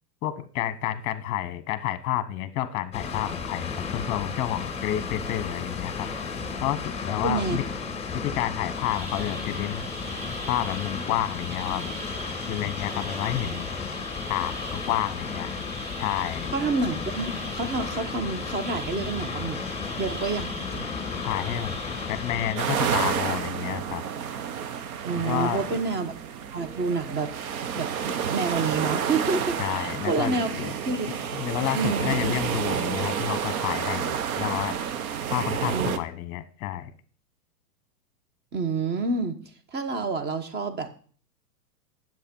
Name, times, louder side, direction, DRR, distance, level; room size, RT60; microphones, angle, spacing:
voice 1, 0.2-6.1 6.6-7.6 8.2-9.9 10.5-11.9 12.5-13.7 14.3-15.5 16.0-16.5 21.2-21.7 22.1-24.0 25.2-25.8 29.6-30.7 31.3-34.8 35.3-36.9, left 12 dB, 35° left, 13 dB, 1.1 m, -30 dB
Water, 2.9-22.6, left 5 dB, 15° left, 2.7 m, -34 dB
voice 2, 7.2-7.6 16.5-19.6 20.0-20.9 25.0-26.1 26.5-27.3 27.8-30.5 30.8-31.1 31.7-32.2 35.7-36.0 38.5-39.4 39.7-40.9, right 4 dB, 20° right, 10 dB, 1.3 m, -28 dB
sound 1, 8.6-23.0, right 2 dB, 35° right, 2.5 m, -41 dB
sound 2, 22.6-36.0, right 8 dB, 60° right, 1.2 m, -30 dB
10.0 x 7.7 x 5.4 m, 0.43 s
hypercardioid pair, 120°, 48 cm